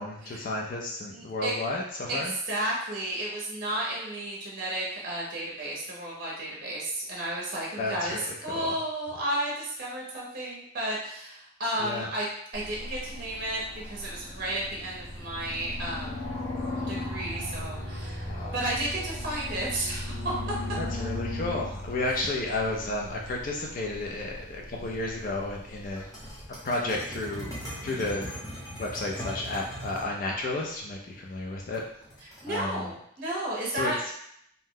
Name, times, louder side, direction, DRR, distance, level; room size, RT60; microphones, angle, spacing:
voice 1, 0.0-2.3 7.8-8.8 11.8-12.1 18.3-18.5 20.8-26.0 26.6-27.5 27.8-28.3 28.7-31.8 32.5-32.9 33.7-33.9, left 2 dB, 40° left, -1 dB, 0.3 m, -32 dB
voice 2, 1.1-1.5 2.1-12.3 12.5-16.3 16.8-20.3 32.2-34.0, right 1 dB, 45° right, -4 dB, 0.6 m, -33 dB
sound 1, 12.5-26.3, left 1 dB, 85° left, 1.0 m, -37 dB
sound 2, 26.0-30.1 31.7-32.5, equal, 20° left, 0.7 m, -40 dB
2.7 x 2.1 x 3.6 m, 0.72 s
head